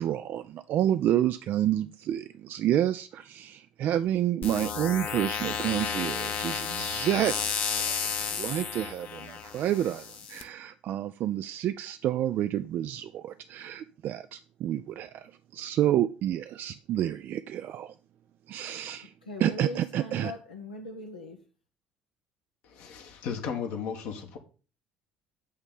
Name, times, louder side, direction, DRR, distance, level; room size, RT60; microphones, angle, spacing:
voice 1, 0.0-7.4 7.8-8.0 8.3-17.9 18.5-19.1 19.4-20.3, right 11 dB, 50° right, 11 dB, 0.3 m, -29 dB
sound 1, 4.4-10.4, left 7 dB, 45° left, 0.9 m, -32 dB
voice 2, 19.3-21.4, left 2 dB, 85° left, 0 dB, 0.8 m, -40 dB
voice 3, 22.6-24.4, left 7 dB, 60° left, 4 dB, 1.1 m, -35 dB
8.6 x 3.3 x 5.5 m, 0.38 s
figure-of-eight pair, 55°, 4 cm